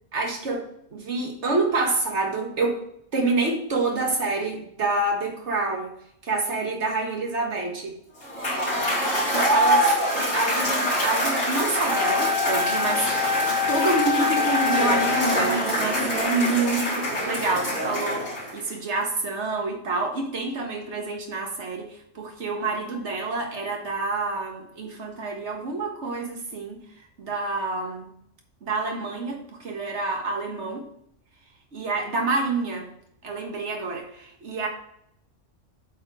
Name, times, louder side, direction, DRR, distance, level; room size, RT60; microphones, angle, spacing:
voice 1, 0.1-2.8 3.1-5.9 6.2-8.0 9.3-26.8 27.2-28.1 28.6-30.9 31.7-32.9 33.2-34.7, right 3 dB, 65° right, 2 dB, 1.8 m, -28 dB
Cheering / Applause / Crowd, 8.2-18.7, equal, 80° left, 3.2 m, -25 dB
Wind instrument woodwind instrument, 11.9-15.7, left 6 dB, 30° right, 0.7 m, -26 dB
7.8 x 4.4 x 5.0 m, 0.72 s
omnidirectional pair, 1.3 m